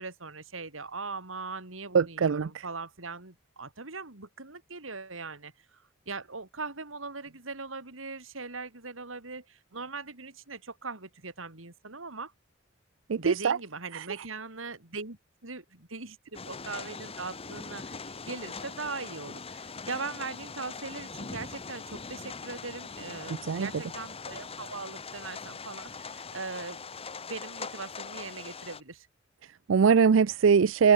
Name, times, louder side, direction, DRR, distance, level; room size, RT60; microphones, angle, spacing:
voice 1, 0.0-12.3 13.2-26.8 27.2-29.1, right 4 dB, 90° right, 3.5 m, -40 dB
voice 2, 1.9-2.6 13.1-13.6 13.9-14.1 23.4-23.7 29.4-30.9, right 6 dB, 70° right, 0.4 m, -22 dB
sound 1, 16.3-28.8, left 4 dB, 30° left, 1.2 m, -42 dB
open air
head